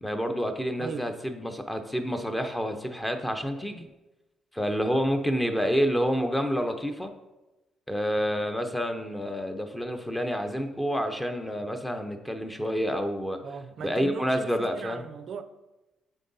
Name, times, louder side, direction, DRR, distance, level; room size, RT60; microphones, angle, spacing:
voice 1, 0.0-3.9 4.5-7.1 7.9-13.4 13.8-15.0, equal, 10° left, 0.6 m, -28 dB
voice 2, 13.4-15.4, right 6 dB, 60° right, 0.4 m, -38 dB
9.0 x 3.9 x 2.7 m
cardioid pair, 90°, 0 cm